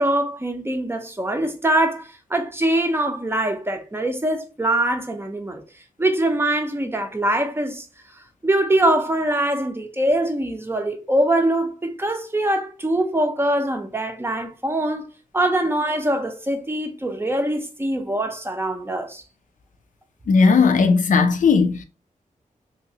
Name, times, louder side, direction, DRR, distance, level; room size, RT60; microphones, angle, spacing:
voice 1, 0.0-5.6 6.0-7.9 8.4-15.1 15.3-19.2, right 1 dB, 15° right, 0.5 m, -23 dB
voice 2, 20.3-21.8, left 5 dB, 65° left, 0.4 m, -16 dB
3.0 x 2.8 x 2.7 m
wide cardioid pair, 115°, 14 cm